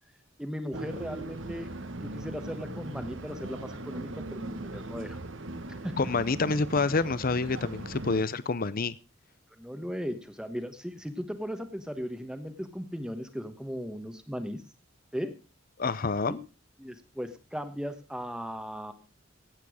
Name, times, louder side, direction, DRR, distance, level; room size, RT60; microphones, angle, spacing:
voice 1, 0.4-5.2 5.8-5.9 9.6-14.6 15.1-15.3 16.3-16.4 16.8-18.9, equal, 5° right, 8 dB, 1.2 m, -37 dB
sound 1, 0.7-8.2, right 2 dB, 65° right, 1.3 m, -39 dB
voice 2, 6.0-9.0 15.8-16.4, left 3 dB, 45° left, 17 dB, 0.7 m, -27 dB
16.5 x 8.5 x 5.0 m, 0.33 s
head